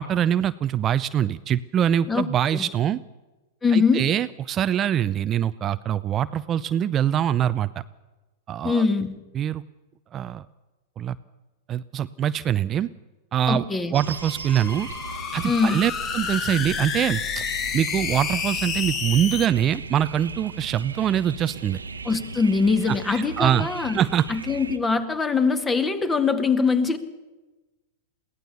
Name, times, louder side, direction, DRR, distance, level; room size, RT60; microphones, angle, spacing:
voice 1, 0.0-3.0 3.7-7.8 8.5-8.8 9.3-9.6 10.1-10.4 11.0-11.2 11.7-12.9 13.3-13.6 13.9-14.9 15.3-17.4 17.7-21.8 22.9-23.7 23.9-24.3, right 10 dB, 30° right, 13 dB, 0.5 m, -24 dB
voice 2, 3.6-4.1 8.6-9.2 13.5-13.9 15.4-15.8 22.1-24.0 24.3-27.0, left 4 dB, 15° left, 11 dB, 2.0 m, -22 dB
sound 1, 13.9-24.8, right 4 dB, 90° right, 1.1 m, -38 dB
sound 2, 14.0-19.5, left 7 dB, 30° left, 1.7 m, -30 dB
22.5 x 17.0 x 6.8 m, 1.1 s
hypercardioid pair, 100°, 0 cm